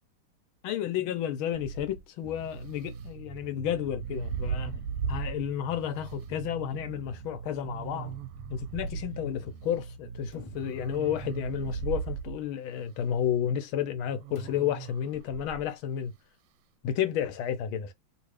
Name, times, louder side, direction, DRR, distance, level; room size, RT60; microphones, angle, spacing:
voice 1, 0.6-4.8 5.1-8.2 8.5-16.1 16.8-17.9, left 9 dB, 75° left, 1.6 m, -31 dB
sound 1, 1.5-2.1 3.8-5.5 6.1-6.2 7.6-9.1 10.5-12.4 14.2-15.7, right 6 dB, 90° right, 1.5 m, -37 dB
Bass guitar, 2.2-11.8, right 5 dB, 60° right, 0.9 m, -43 dB
sound 2, 10.3-11.8 14.4-14.9, left 5 dB, 35° left, 0.5 m, -50 dB
3.2 x 3.0 x 3.1 m
omnidirectional pair, 2.3 m